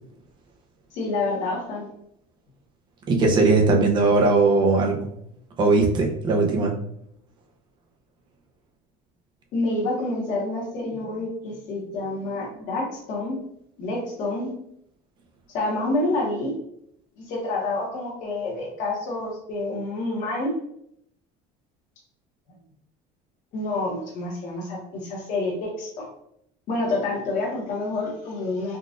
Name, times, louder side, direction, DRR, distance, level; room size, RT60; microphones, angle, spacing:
voice 1, 0.9-1.8 9.5-13.4 13.8-14.5 15.5-16.5 17.2-20.5 23.5-26.1 26.7-28.8, left 2 dB, 50° left, -3 dB, 1.0 m, -28 dB
voice 2, 3.1-5.1 5.6-6.8, right 3 dB, 30° right, 1 dB, 0.6 m, -19 dB
3.8 x 2.4 x 2.4 m, 0.72 s
cardioid pair, 165°, 16 cm